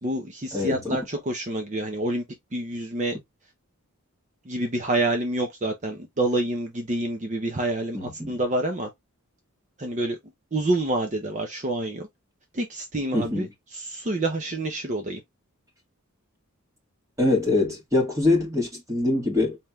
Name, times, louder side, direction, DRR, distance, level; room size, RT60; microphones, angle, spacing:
voice 1, 0.0-2.2 2.5-3.2 4.5-8.9 9.8-10.2 10.5-12.1 12.5-13.5 13.7-15.2, right 1 dB, 35° right, 0.6 m, -27 dB
voice 2, 0.5-1.0 7.9-8.4 13.1-13.4 17.2-19.6, left 2 dB, 15° right, 1.6 m, -24 dB
4.3 x 3.5 x 2.3 m
head